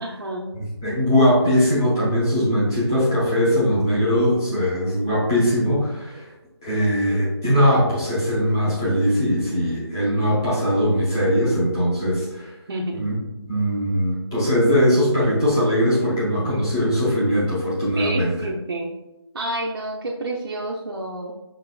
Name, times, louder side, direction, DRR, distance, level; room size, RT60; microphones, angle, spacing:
voice 1, 0.0-0.5 12.7-13.1 18.0-18.9 19.3-21.3, right 1 dB, 55° right, -3 dB, 0.5 m, -29 dB
voice 2, 0.5-6.2 6.6-12.5 12.9-13.2 13.4-18.3, equal, 10° left, -9 dB, 0.5 m, -20 dB
5.8 x 3.0 x 2.2 m, 0.99 s
figure-of-eight pair, 170°, 14 cm